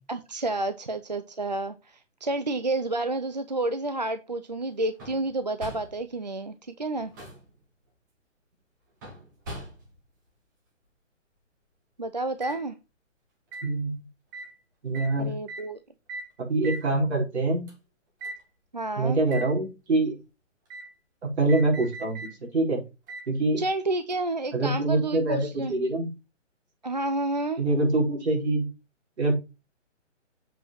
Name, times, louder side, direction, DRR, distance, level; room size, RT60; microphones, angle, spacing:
voice 1, 0.1-7.1 12.0-12.8 15.2-15.8 18.7-19.2 23.6-25.7 26.8-27.6, right 2 dB, 35° right, 10 dB, 0.4 m, -30 dB
sound 1, 5.0-5.3 5.6-6.0 6.9-7.5 9.0-10.0 12.4-12.6 13.5-13.7 14.3-14.5 14.9-15.1 15.5-15.7 16.1-16.3 16.6-16.9 17.7-17.8 18.2-18.4 19.3-19.5 20.7-20.9 21.5-22.3 23.1-23.3 24.1-24.2, right 2 dB, 15° right, 1.4 m, -39 dB
voice 2, 13.6-14.0 14.8-15.3 16.4-17.7 19.0-20.1 21.2-22.8 23.3-23.6 24.5-26.1 27.6-28.7 29.2-29.3, right 2 dB, 60° right, -1 dB, 4.9 m, -25 dB
7.7 x 5.3 x 5.6 m, 0.27 s
hypercardioid pair, 175°, 38 cm